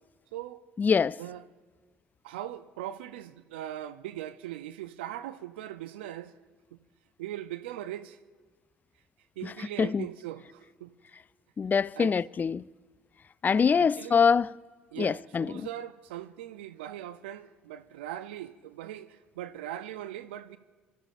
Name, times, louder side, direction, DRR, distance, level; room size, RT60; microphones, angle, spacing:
voice 1, 0.8-1.2 9.8-10.1 11.6-12.6 13.4-14.5 15.0-15.7, left 6 dB, 30° left, 0.3 m, -24 dB
voice 2, 2.2-6.3 6.7-6.8 7.2-8.2 9.4-10.9 12.0-12.1 13.7-14.2 14.9-20.6, right 12 dB, 80° right, 0.5 m, -40 dB
28.0 x 13.5 x 2.5 m
hypercardioid pair, 55°, 6 cm